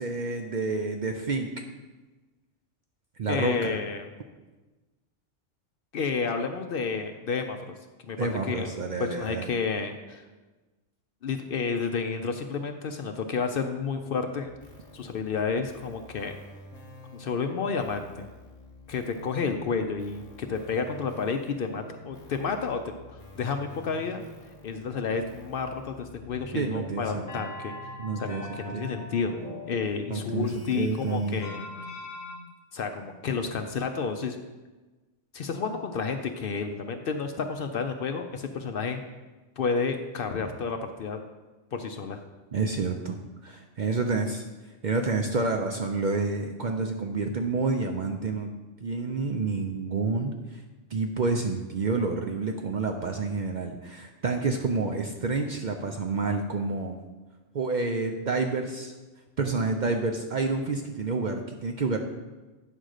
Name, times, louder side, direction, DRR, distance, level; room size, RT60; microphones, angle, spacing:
voice 1, 0.0-1.5 3.2-3.8 8.2-9.5 26.5-27.4 28.0-28.9 30.1-31.4 42.5-44.4 44.8-48.5 48.8-50.6 50.9-57.0 57.5-58.9 59.4-62.0, right 3 dB, 55° right, 4 dB, 0.6 m, -29 dB
voice 2, 3.3-4.1 5.9-7.7 8.0-10.2 11.2-14.5 14.9-16.4 17.1-18.3 18.9-22.8 23.1-24.2 24.6-27.7 28.2-29.4 29.7-31.7 32.7-34.4 35.3-39.0 39.6-41.2 41.7-42.2, left 5 dB, 60° left, 6 dB, 0.7 m, -31 dB
sound 1, 14.5-32.4, left 1 dB, 35° left, 1.2 m, -45 dB
9.0 x 3.8 x 6.4 m, 1.2 s
omnidirectional pair, 1.2 m